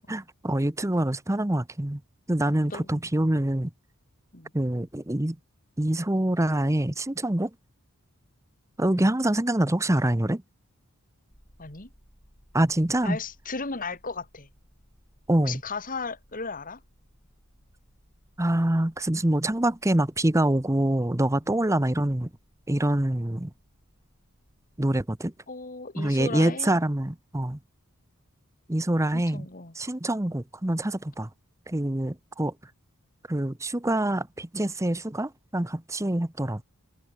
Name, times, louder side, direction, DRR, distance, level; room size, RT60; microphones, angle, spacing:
voice 1, 0.0-2.0 2.3-3.7 4.5-5.4 5.8-7.5 8.8-10.4 12.5-13.2 15.3-15.6 18.4-22.3 22.7-23.5 24.8-25.3 26.0-27.6 28.7-29.5 29.7-31.3 31.7-32.5 33.3-36.6, right 1 dB, 15° right, 0.9 m, -25 dB
voice 2, 2.7-3.0 4.3-4.5 8.9-9.1 11.6-11.9 13.0-14.5 15.4-16.8 21.5-21.6 25.5-26.8 29.1-29.7, left 4 dB, 40° left, 2.6 m, -36 dB
sound 1, 11.3-25.2, equal, 10° left, 7.1 m, -62 dB
head